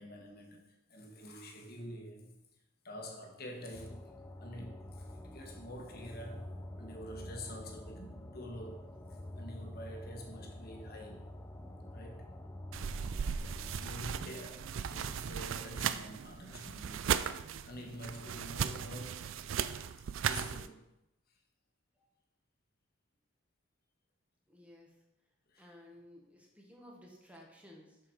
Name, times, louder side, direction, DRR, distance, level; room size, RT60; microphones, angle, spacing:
voice 1, 0.0-2.4 2.8-4.1 4.4-11.3 11.9-12.3 13.8-17.2 17.6-19.4 20.2-20.9 25.5-25.7, equal, 50° left, 1.4 m, -47 dB
sound 1, 3.7-13.9, left 1 dB, 10° left, 0.6 m, -47 dB
sound 2, 12.7-20.7, right 8 dB, 70° right, 0.4 m, -37 dB
voice 2, 13.9-14.2 24.5-24.9 25.6-28.0, left 1 dB, 5° right, 1.5 m, -56 dB
7.6 x 6.2 x 4.5 m
head